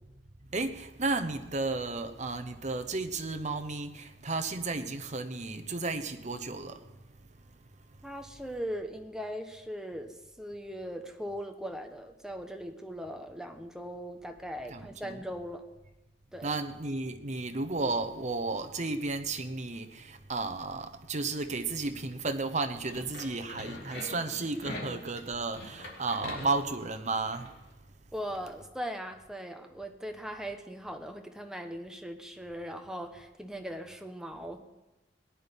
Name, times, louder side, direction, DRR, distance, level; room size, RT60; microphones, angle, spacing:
voice 1, 0.5-6.9 14.7-15.2 16.4-27.5, right 3 dB, 40° right, 1.0 m, -33 dB
voice 2, 8.0-15.6 16.3-16.5 28.1-34.6, equal, 5° right, 1.1 m, -39 dB
sound 1, 22.7-27.5, left 1 dB, 60° left, 3.0 m, -44 dB
18.5 x 10.0 x 5.3 m
head